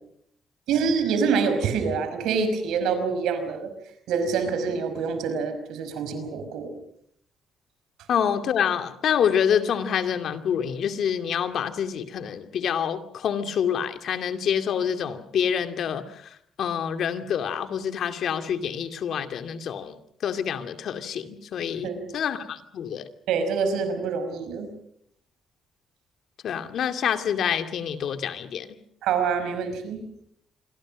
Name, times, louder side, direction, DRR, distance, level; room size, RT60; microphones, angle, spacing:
voice 1, 0.7-3.7 4.1-6.7 21.8-22.1 23.3-24.7 29.0-30.0, right 5 dB, 85° right, 5.3 m, -26 dB
voice 2, 8.1-16.3 16.6-20.0 20.2-23.1 26.4-28.7, left 8 dB, 70° left, 2.4 m, -27 dB
27.0 x 23.5 x 6.3 m
cardioid pair, 90°, 0 cm